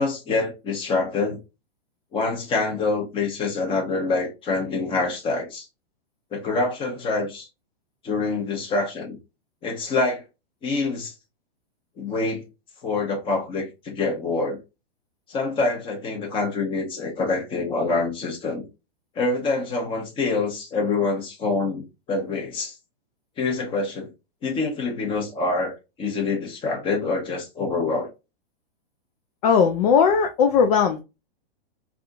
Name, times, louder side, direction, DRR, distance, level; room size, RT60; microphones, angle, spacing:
voice 1, 0.0-1.4 2.1-5.7 6.3-7.5 8.0-9.2 9.6-10.2 10.6-11.1 12.0-12.4 12.8-14.6 15.3-18.6 19.1-22.8 23.4-24.1 24.4-28.1, left 3 dB, 15° left, 0.9 m, -26 dB
voice 2, 29.4-31.0, left 6 dB, 40° left, 0.5 m, -18 dB
3.4 x 2.4 x 2.5 m
hypercardioid pair, 150°, 31 cm